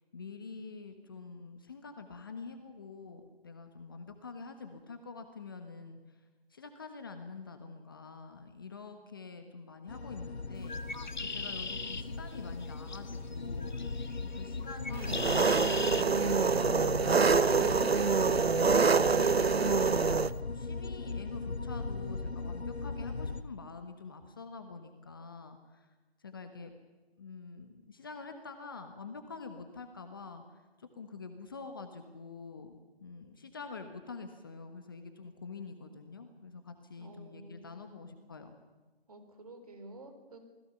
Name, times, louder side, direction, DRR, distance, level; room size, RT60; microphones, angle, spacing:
voice 1, 0.0-6.2 6.5-13.8 14.2-18.6 19.1-25.9 26.2-26.7 27.2-38.5, left 4 dB, 20° left, 7 dB, 1.2 m, -46 dB
sound 1, 9.9-23.4, left 3 dB, 90° left, 1.5 m, -38 dB
Bird, 10.6-16.0, left 4 dB, 45° left, 1.6 m, -41 dB
Engine, 15.0-20.3, right 5 dB, 75° right, 1.0 m, -26 dB
voice 2, 37.0-37.9 39.1-40.4, right 2 dB, 35° right, 7 dB, 4.1 m, -51 dB
28.0 x 20.0 x 6.9 m, 1.3 s
figure-of-eight pair, 165°, 31 cm